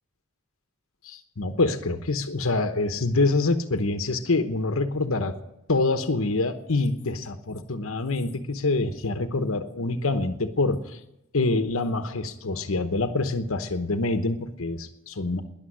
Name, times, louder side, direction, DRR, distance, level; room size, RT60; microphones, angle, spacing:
voice 1, 1.0-5.3 5.7-11.0 11.3-15.4, left 3 dB, 75° left, 8 dB, 1.0 m, -26 dB
12.5 x 10.5 x 10.0 m, 0.88 s
head